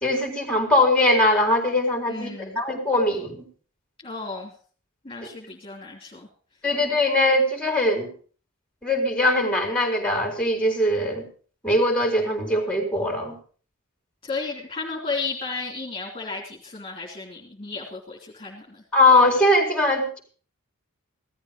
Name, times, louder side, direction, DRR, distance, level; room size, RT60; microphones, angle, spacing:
voice 1, 0.0-3.5 6.6-8.1 8.8-11.3 11.6-13.4 18.9-20.2, left 1 dB, 5° left, 3 dB, 4.0 m, -21 dB
voice 2, 2.1-2.6 4.0-4.5 5.0-6.3 14.2-18.8, left 4 dB, 25° left, -1 dB, 3.0 m, -33 dB
16.5 x 13.5 x 5.2 m, 0.42 s
head